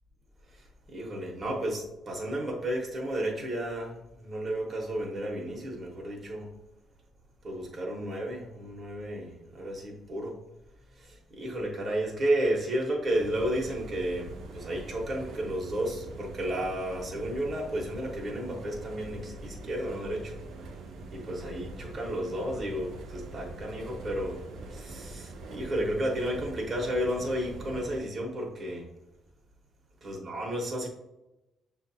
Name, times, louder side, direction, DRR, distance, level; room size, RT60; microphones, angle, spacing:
voice 1, 0.5-6.5 7.4-10.3 11.0-20.3 21.1-28.9 30.0-30.9, right 1 dB, 40° right, -1 dB, 1.1 m, -32 dB
sound 1, 13.1-28.0, right 2 dB, 75° right, 0.5 m, -43 dB
6.6 x 2.5 x 2.7 m, 0.95 s
cardioid pair, 90°, 0 cm